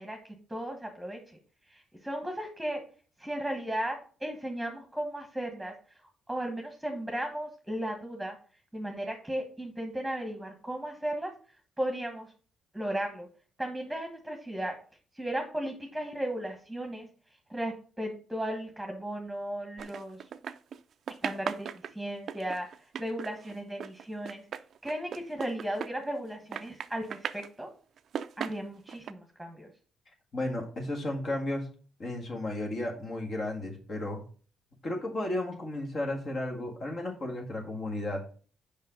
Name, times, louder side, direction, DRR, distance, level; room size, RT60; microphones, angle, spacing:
voice 1, 0.0-2.8 3.2-8.4 8.7-12.3 12.7-13.3 13.6-14.8 15.1-20.3 21.2-24.5 24.8-27.7 28.4-29.7, right 1 dB, ahead, 3 dB, 1.4 m, -36 dB
sound 1, 19.8-20.8 21.1-26.3 26.5-27.5 28.0-29.1, right 8 dB, 60° right, 0.4 m, -38 dB
voice 2, 30.3-31.7 32.0-34.2 34.8-38.2, left 1 dB, 45° left, 1 dB, 1.8 m, -33 dB
5.5 x 5.2 x 5.1 m, 0.41 s
cardioid pair, 90°, 0 cm